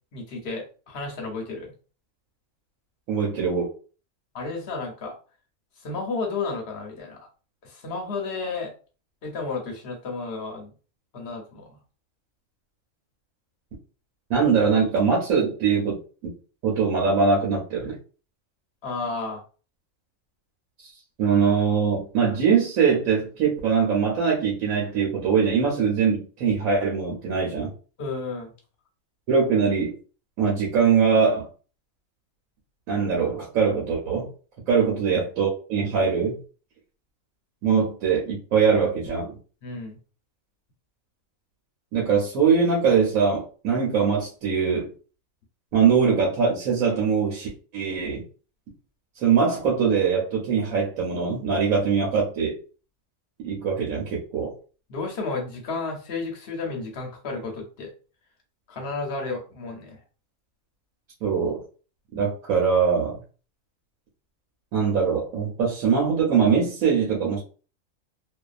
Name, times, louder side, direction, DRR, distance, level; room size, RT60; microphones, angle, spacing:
voice 1, 0.1-1.7 4.3-5.1 5.8-7.2 7.6-8.7 9.2-10.7 11.1-11.8 18.8-19.4 28.0-28.5 34.7-34.8 39.6-40.0 53.8-53.9 54.9-57.9 58.7-60.0, left 3 dB, 60° left, 0.8 m, -32 dB
voice 2, 3.1-3.7 14.3-16.0 16.2-16.3 16.6-18.0 21.2-27.7 29.3-29.9 30.4-31.5 32.9-34.3 34.7-36.4 37.6-39.4 41.9-44.9 45.7-48.2 49.2-52.6 53.4-54.5 61.2-61.6 62.1-63.2 64.7-67.4, right 6 dB, 85° right, 1.2 m, -22 dB
2.6 x 2.3 x 2.3 m
omnidirectional pair, 1.4 m